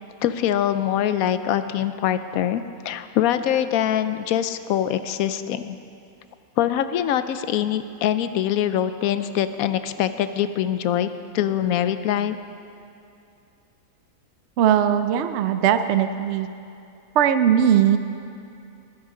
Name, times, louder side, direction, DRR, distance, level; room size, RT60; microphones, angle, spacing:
voice 1, 0.2-5.8 6.6-12.4, left 10 dB, 70° left, 11 dB, 1.0 m, -23 dB
voice 2, 14.6-16.5 17.1-18.0, right 9 dB, 70° right, 10 dB, 0.6 m, -19 dB
20.0 x 10.5 x 3.8 m, 2.6 s
omnidirectional pair, 1.7 m